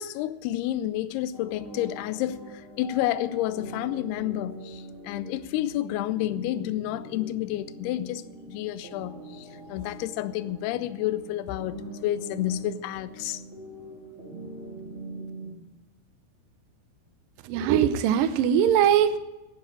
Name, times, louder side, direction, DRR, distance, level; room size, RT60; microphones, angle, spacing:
voice 1, 0.0-13.4, left 13 dB, 80° left, 2.5 m, -30 dB
sound 1, 1.3-15.5, right 1 dB, 20° right, 2.9 m, -43 dB
voice 2, 17.5-19.2, right 9 dB, 80° right, 2.1 m, -21 dB
11.5 x 9.9 x 8.5 m
omnidirectional pair, 4.8 m